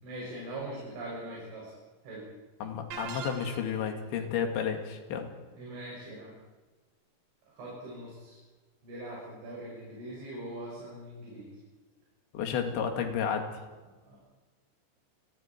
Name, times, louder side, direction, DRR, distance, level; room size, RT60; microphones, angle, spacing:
voice 1, 0.0-1.7 2.0-2.3 5.5-6.3 7.5-8.4 8.8-11.6 14.1-14.2, right 1 dB, 85° right, -5 dB, 9.1 m, -41 dB
voice 2, 2.6-5.3 12.3-13.5, left 7 dB, 75° left, 4 dB, 4.4 m, -31 dB
sound 1, 2.9-3.9, right 7 dB, 65° right, 3.4 m, -41 dB
29.5 x 23.0 x 4.5 m, 1.3 s
omnidirectional pair, 5.3 m